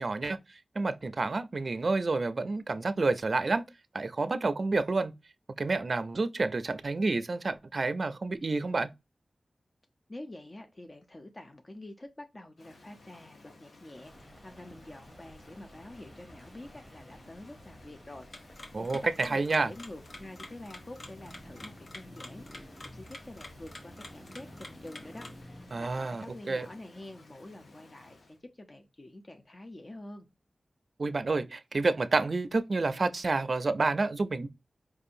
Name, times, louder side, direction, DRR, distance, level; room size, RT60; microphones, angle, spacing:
voice 1, 0.0-3.6 3.9-5.1 5.6-8.9 18.7-19.7 25.7-26.7 31.0-34.5, right 3 dB, 60° right, 0.4 m, -29 dB
voice 2, 10.1-30.3, left 1 dB, 40° left, 0.6 m, -47 dB
Rain, 12.6-28.4, left 2 dB, 90° left, 0.8 m, -57 dB
sound 1, 13.9-26.1, equal, 5° right, 0.8 m, -52 dB
sound 2, 18.3-25.4, left 2 dB, 65° left, 0.9 m, -49 dB
4.6 x 2.7 x 2.5 m
cardioid pair, 55°, 0 cm